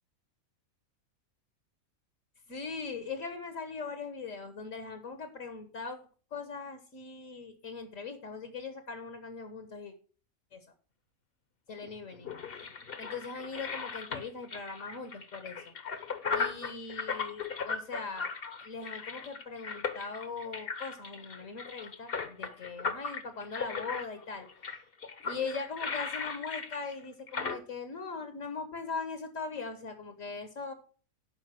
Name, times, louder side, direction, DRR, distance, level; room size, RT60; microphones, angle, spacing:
voice 1, 2.5-6.0 6.3-9.9 10.5-10.6 11.7-12.3 13.0-15.6 16.3-18.3 18.6-24.5 25.2-30.7, left 4 dB, 65° left, 7 dB, 1.7 m, -40 dB
sound 1, 11.8-27.6, left 5 dB, 45° left, 1.2 m, -37 dB
12.0 x 5.2 x 6.5 m, 0.40 s
omnidirectional pair, 1.5 m